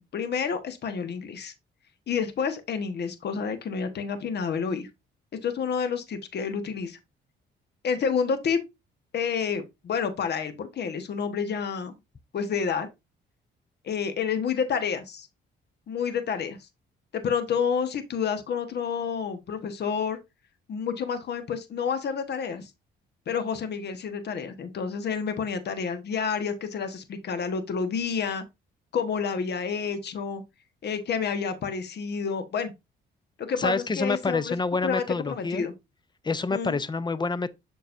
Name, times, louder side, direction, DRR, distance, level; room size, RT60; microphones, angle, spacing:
voice 1, 0.0-1.5 2.1-4.9 5.4-7.0 7.8-8.6 9.1-11.9 12.3-12.9 13.8-15.3 15.9-16.6 17.1-20.2 20.7-22.7 23.3-28.4 28.9-30.4 30.8-32.7 33.5-34.6 34.8-35.7 36.5-36.8, left 6 dB, 55° left, 1.2 m, -29 dB
voice 2, 33.6-35.6 36.2-37.5, left 3 dB, 20° left, 0.6 m, -27 dB
7.0 x 6.2 x 2.6 m
cardioid pair, 90°, 20 cm